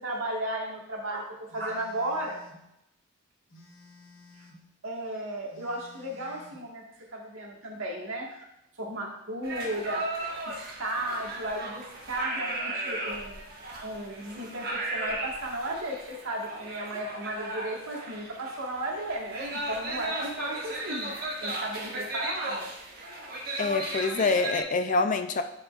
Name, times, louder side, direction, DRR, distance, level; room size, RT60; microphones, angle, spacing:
voice 1, 0.0-2.4 4.8-6.8 7.1-8.4 8.8-10.0 10.5-13.4 13.8-21.1 21.4-22.7, right 1 dB, 75° right, -1 dB, 1.7 m, -34 dB
Telephone, 1.5-2.6 3.5-4.7 5.5-6.7, left 2 dB, 70° left, 2.1 m, -54 dB
sound 1, 9.4-24.6, right 2 dB, 45° right, 1.4 m, -36 dB
voice 2, 23.6-25.4, left 3 dB, 35° left, 8 dB, 0.4 m, -26 dB
11.0 x 5.2 x 2.5 m, 0.85 s
head